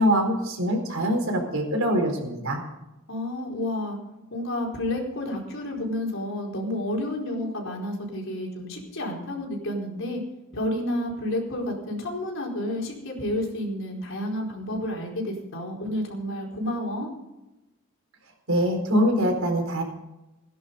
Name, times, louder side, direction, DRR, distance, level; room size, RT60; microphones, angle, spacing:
voice 1, 0.0-2.6 18.5-19.8, equal, 85° right, 2 dB, 4.5 m, -23 dB
voice 2, 3.1-4.0 4.3-10.2 10.5-17.1, left 1 dB, 65° left, -1 dB, 4.5 m, -30 dB
18.0 x 10.5 x 5.3 m, 0.95 s
head